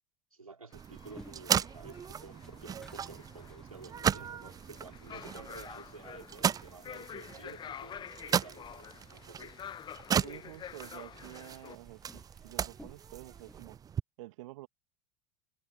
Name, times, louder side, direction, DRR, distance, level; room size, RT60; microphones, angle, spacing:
voice 1, 0.3-9.5, right 4 dB, 85° right, 5.0 m, -51 dB
sound 1, 0.7-11.8, left 9 dB, 25° left, 0.7 m, -49 dB
sound 2, 0.7-14.0, right 8 dB, 20° right, 0.5 m, -36 dB
sound 3, 1.2-13.6, left 1 dB, 5° left, 1.9 m, -60 dB
voice 2, 10.2-13.8 14.2-14.7, right 18 dB, 60° right, 2.0 m, -49 dB
figure-of-eight pair, 75°, 18 cm